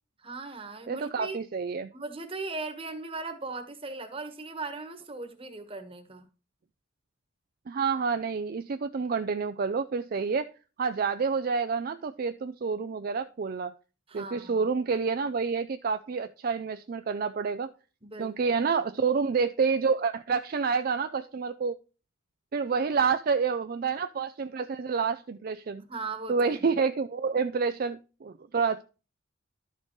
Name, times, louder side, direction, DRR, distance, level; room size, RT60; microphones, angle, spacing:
voice 1, 0.2-1.4 1.9-6.2 14.1-14.7 18.0-18.6 25.8-26.6, right 3 dB, 30° right, 1.3 m, -38 dB
voice 2, 0.9-1.9 7.7-10.5 10.8-13.7 14.1-17.7 18.2-21.7 22.5-25.8 26.3-28.8, right 5 dB, 45° right, 0.4 m, -28 dB
12.0 x 6.5 x 3.1 m
head